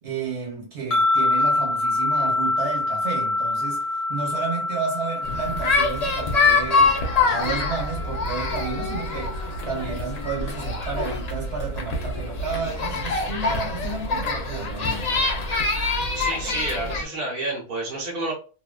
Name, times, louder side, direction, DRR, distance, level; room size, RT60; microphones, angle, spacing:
voice 1, 0.0-15.2, right 5 dB, 75° right, 1.6 m, -32 dB
sound 1, 0.9-10.2, left 2 dB, 15° left, 0.9 m, -26 dB
sound 2, 5.2-17.0, left 3 dB, 50° left, 0.5 m, -25 dB
voice 2, 16.1-18.3, right 2 dB, 55° right, 1.1 m, -29 dB
2.9 x 2.1 x 2.2 m
omnidirectional pair, 1.2 m